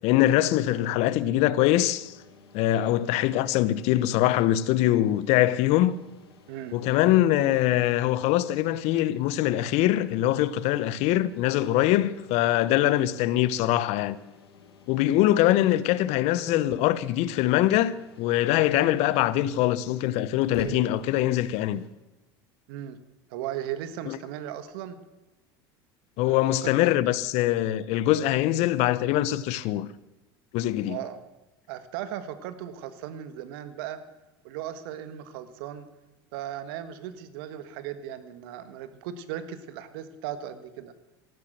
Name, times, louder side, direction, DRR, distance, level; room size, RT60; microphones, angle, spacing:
voice 1, 0.0-2.2 2.5-6.0 6.7-14.2 14.9-21.8 24.1-24.2 26.2-29.9 30.5-31.0, left 14 dB, 60° left, 0.9 m, -23 dB
sound 1, 1.9-21.9, left 4 dB, 85° left, 2.4 m, -49 dB
voice 2, 6.5-6.8 22.7-23.0 23.3-25.0 26.3-26.7 30.9-31.2 31.7-34.0 34.4-35.9 36.3-40.9, right 10 dB, 70° right, 1.6 m, -37 dB
14.0 x 12.5 x 7.6 m
hypercardioid pair, 90°, 13 cm